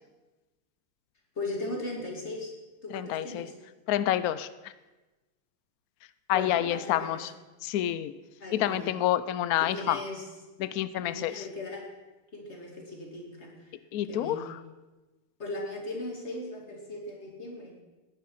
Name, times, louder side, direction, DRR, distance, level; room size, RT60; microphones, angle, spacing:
voice 1, 1.4-2.5 2.8-3.5 6.3-7.3 8.4-8.9 9.6-10.3 11.0-11.9 12.3-13.7 14.1-14.5 15.4-17.8, left 2 dB, 35° left, 0 dB, 2.9 m, -38 dB
voice 2, 2.9-3.5 3.9-4.7 6.3-7.3 7.6-8.1 8.5-10.0 10.6-11.5 13.9-14.6, left 12 dB, 90° left, 15 dB, 0.8 m, -28 dB
18.0 x 10.0 x 5.7 m, 1.2 s
omnidirectional pair, 2.2 m